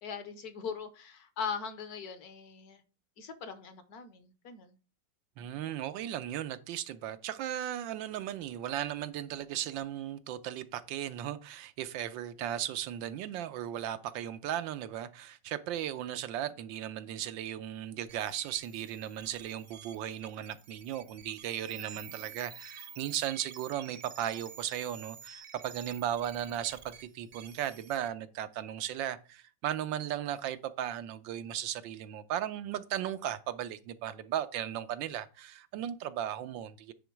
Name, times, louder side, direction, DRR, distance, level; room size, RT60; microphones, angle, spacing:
voice 1, 0.0-2.8 3.2-4.8 5.4-5.6 21.8-21.9, left 6 dB, 60° left, 1.3 m, -40 dB
voice 2, 5.4-36.9, right 11 dB, 90° right, 1.4 m, -36 dB
sound 1, 18.1-28.1, right 8 dB, 60° right, 0.7 m, -50 dB
9.3 x 3.8 x 4.6 m
omnidirectional pair, 2.0 m